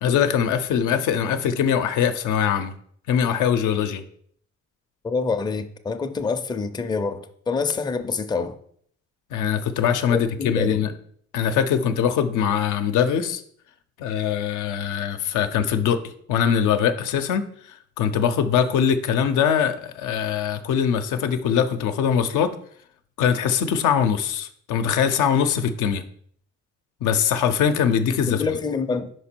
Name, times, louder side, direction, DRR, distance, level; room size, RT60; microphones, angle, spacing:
voice 1, 0.0-2.7 3.1-4.0 9.3-10.9 11.3-13.4 14.0-16.0 16.3-22.5 23.2-26.0 27.0-28.4, left 8 dB, 85° left, 0.6 m, -22 dB
voice 2, 5.0-8.6 10.1-10.8 28.3-29.1, left 4 dB, 15° left, 0.4 m, -26 dB
5.1 x 4.6 x 4.4 m
cardioid pair, 90°, 30 cm